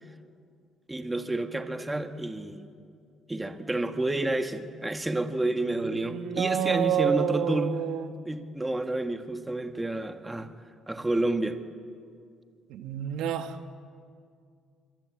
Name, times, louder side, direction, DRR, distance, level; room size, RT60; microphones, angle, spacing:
voice 1, 0.9-2.7 3.3-7.8 8.2-10.5 10.9-11.6, right 1 dB, 10° right, 7 dB, 1.5 m, -30 dB
voice 2, 5.9-8.1 12.7-13.7, right 9 dB, 80° right, 8 dB, 1.4 m, -28 dB
26.0 x 22.0 x 8.6 m, 2.2 s
cardioid pair, 100°, 0 cm